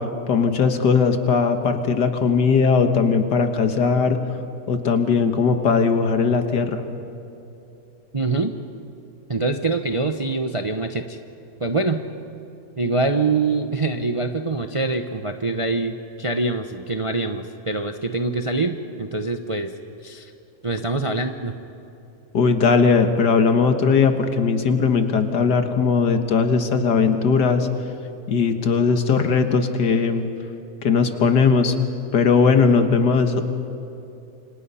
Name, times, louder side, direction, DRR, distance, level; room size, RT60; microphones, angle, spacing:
voice 1, 0.3-4.2 4.7-6.8 22.3-27.7 28.3-30.3 30.8-31.7 32.1-33.5, left 5 dB, 80° left, 7 dB, 2.1 m, -19 dB
voice 2, 8.1-8.5 9.3-11.2 11.6-12.0 12.8-19.7 20.0-20.3 20.6-21.5, right 3 dB, 30° right, 6 dB, 0.6 m, -24 dB
28.5 x 26.0 x 5.7 m, 2.9 s
omnidirectional pair, 1.8 m